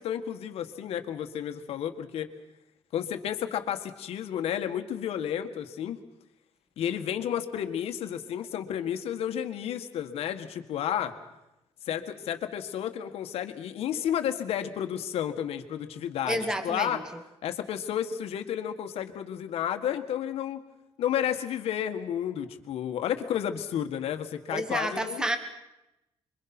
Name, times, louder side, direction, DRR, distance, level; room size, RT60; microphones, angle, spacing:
voice 1, 0.0-2.3 2.9-6.0 6.8-11.2 11.9-17.0 17.4-20.6 21.0-25.2, left 10 dB, 70° left, 7 dB, 1.9 m, -31 dB
voice 2, 16.3-17.0 24.5-25.4, right 1 dB, 5° right, 8 dB, 1.3 m, -29 dB
26.5 x 23.5 x 6.2 m, 0.91 s
cardioid pair, 145°, 11 cm